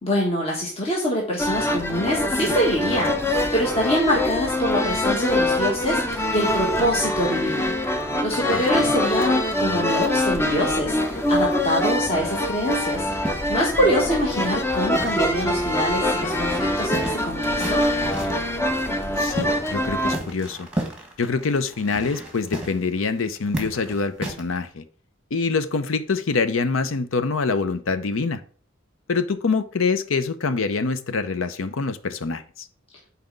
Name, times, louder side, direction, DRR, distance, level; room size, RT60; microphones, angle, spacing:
voice 1, 0.0-17.8, equal, 30° left, 1.4 m, -25 dB
sound 1, 1.4-20.2, left 1 dB, 10° left, 0.6 m, -24 dB
voice 2, 8.5-8.9 19.2-20.7 21.2-24.8 25.3-28.4 29.1-32.7, left 4 dB, 75° left, 0.6 m, -25 dB
sound 2, 12.7-15.5 15.8-15.9 16.2-18.5 19.0-19.8 20.1-24.6, right 1 dB, 5° right, 1.4 m, -34 dB
5.9 x 4.3 x 5.1 m
head